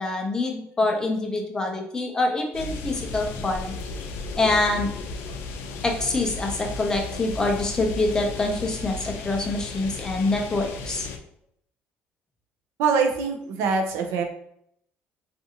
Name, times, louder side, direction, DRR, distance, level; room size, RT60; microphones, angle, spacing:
voice 1, 0.0-3.7 4.4-4.9 5.8-11.1, left 2 dB, 15° left, 1 dB, 0.5 m, -25 dB
sound 1, 2.5-11.2, left 3 dB, 85° left, 0.4 m, -35 dB
voice 2, 12.8-14.2, right 5 dB, 85° right, 4 dB, 0.5 m, -23 dB
2.6 x 2.4 x 2.7 m, 0.71 s
cardioid pair, 150°, 4 cm